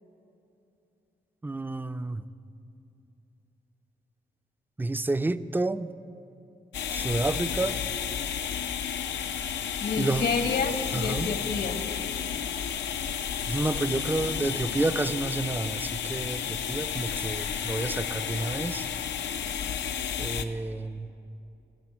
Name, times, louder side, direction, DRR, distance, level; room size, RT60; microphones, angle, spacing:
voice 1, 1.4-2.2 4.8-5.9 6.9-7.8 10.0-10.3 10.9-11.3 13.5-18.9 20.2-21.1, right 2 dB, 10° right, 13 dB, 0.3 m, -30 dB
sound 1, 6.7-20.4, left 8 dB, 90° left, 0.5 m, -32 dB
voice 2, 9.8-11.8, left 5 dB, 65° left, 8 dB, 1.0 m, -29 dB
15.5 x 6.9 x 6.2 m, 2.7 s
cardioid pair, 65°, 18 cm